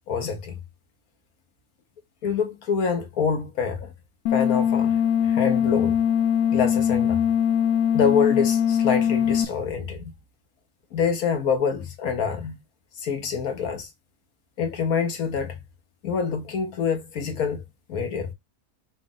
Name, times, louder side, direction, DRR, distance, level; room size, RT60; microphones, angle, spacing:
voice 1, 0.1-0.6 2.2-3.9 4.3-6.0 6.5-7.2 7.9-10.1 10.9-12.6 13.0-13.9 14.6-15.6 16.0-17.6 17.9-18.3, left 6 dB, 85° left, 1.5 m, -26 dB
sound 1, 4.3-9.4, left 8 dB, 70° left, 0.8 m, -21 dB
5.2 x 2.5 x 3.7 m
omnidirectional pair, 1.5 m